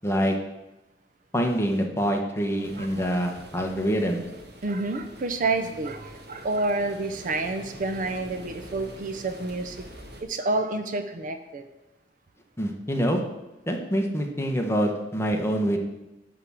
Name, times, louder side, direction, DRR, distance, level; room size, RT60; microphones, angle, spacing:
voice 1, 0.0-0.4 1.3-4.2 12.6-13.2 13.7-15.8, equal, 15° left, 2 dB, 1.1 m, -25 dB
sound 1, 2.6-10.2, equal, 65° right, 1.3 m, -45 dB
voice 2, 2.8-3.1 4.6-9.9 10.2-11.6, right 2 dB, 45° right, 8 dB, 0.6 m, -29 dB
10.5 x 3.6 x 7.3 m, 0.97 s
head